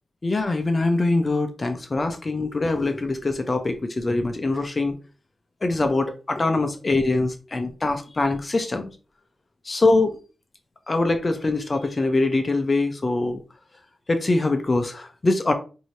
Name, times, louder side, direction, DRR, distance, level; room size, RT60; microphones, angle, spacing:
voice 1, 0.2-4.9 5.6-8.9 9.7-10.2 10.9-13.4 14.1-15.5, left 2 dB, 30° left, 0.6 m, -23 dB
5.4 x 2.7 x 3.1 m
wide cardioid pair, 130°, 0 cm